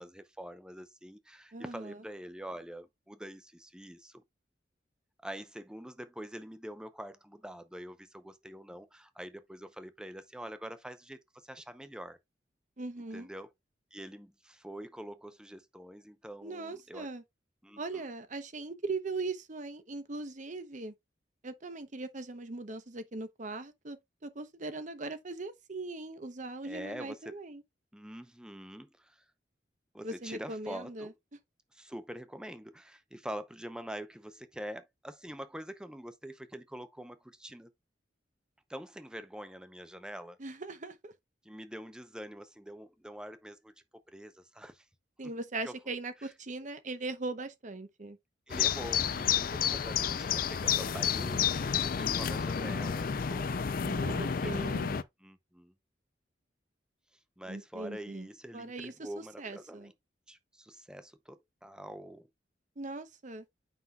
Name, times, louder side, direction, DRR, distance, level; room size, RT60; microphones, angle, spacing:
voice 1, 0.0-4.2 5.2-12.2 13.1-13.5 13.9-17.1 17.6-18.1 26.6-27.4 27.9-29.2 29.9-31.1 31.7-37.7 38.7-40.4 41.4-43.7 44.1-44.8 45.2-45.3 45.6-45.7 46.2-46.3 48.5-54.9 55.2-55.7 57.4-59.9 60.3-62.3, equal, 5° right, 0.7 m, -45 dB
voice 2, 1.5-2.0 12.8-13.3 16.4-17.2 17.8-20.9 21.4-27.6 30.0-31.1 40.4-41.1 45.2-48.2 53.8-55.0 57.5-58.3 58.5-59.1 59.4-59.9 62.8-63.4, right 3 dB, 45° right, 0.8 m, -40 dB
sound 1, 48.5-55.0, left 7 dB, 50° left, 0.5 m, -30 dB
8.1 x 5.6 x 2.3 m
head